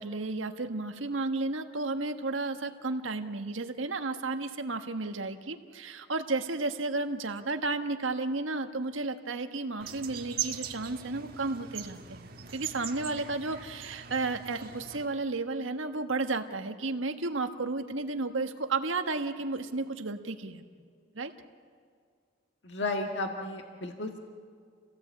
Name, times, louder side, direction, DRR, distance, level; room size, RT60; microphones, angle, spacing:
voice 1, 0.0-20.7 21.1-21.3, right 3 dB, 80° right, 7 dB, 1.4 m, -33 dB
sound 1, 9.8-15.1, right 9 dB, 50° right, 1.3 m, -40 dB
voice 2, 22.6-24.2, left 2 dB, 60° left, 3 dB, 1.8 m, -33 dB
28.0 x 17.5 x 8.5 m, 2.2 s
head